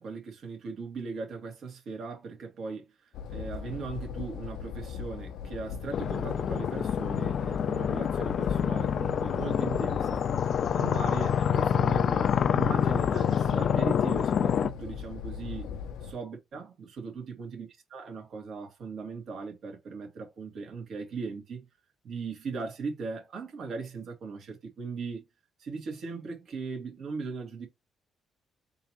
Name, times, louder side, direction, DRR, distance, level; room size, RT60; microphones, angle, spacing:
voice 1, 0.0-10.3 10.7-15.7 16.0-21.7 22.0-25.2 25.6-27.7, right 4 dB, 65° right, 1.9 m, -39 dB
sound 1, 3.1-16.1, left 6 dB, 85° left, 0.7 m, -38 dB
sound 2, 5.9-14.7, left 8 dB, 55° left, 0.3 m, -27 dB
3.8 x 2.9 x 4.4 m
cardioid pair, 90°, 0 cm